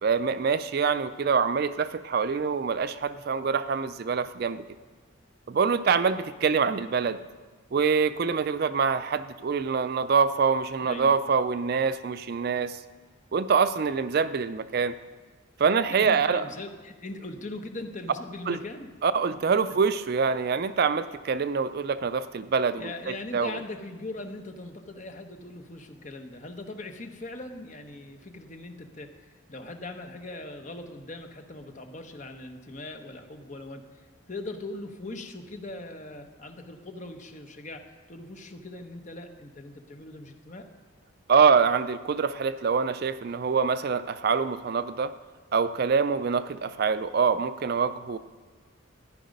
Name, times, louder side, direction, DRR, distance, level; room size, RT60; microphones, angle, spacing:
voice 1, 0.0-4.6 5.5-7.2 7.7-12.8 13.3-14.9 15.6-16.4 18.5-18.6 19.0-23.6 41.3-45.1 45.5-48.2, right 5 dB, 45° right, 13 dB, 0.4 m, -25 dB
voice 2, 10.8-11.1 16.0-18.9 19.3-19.4 22.8-29.1 29.5-40.7, left 2 dB, 35° left, 5 dB, 1.0 m, -40 dB
14.0 x 10.5 x 5.3 m, 1.4 s
head